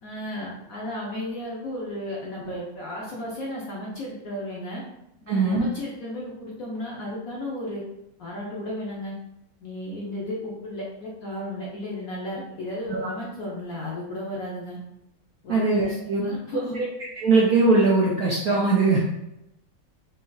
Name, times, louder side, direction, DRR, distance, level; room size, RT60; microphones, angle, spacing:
voice 1, 0.0-4.8 5.3-7.8 8.2-9.1 9.6-14.8 15.4-16.8, left 1 dB, 60° left, -4 dB, 0.9 m, -34 dB
voice 2, 5.3-5.7 12.9-13.1 15.5-16.2 16.7-16.9 17.2-19.0, right 3 dB, 70° right, -3 dB, 0.9 m, -20 dB
5.3 x 2.8 x 2.3 m, 0.83 s
omnidirectional pair, 2.1 m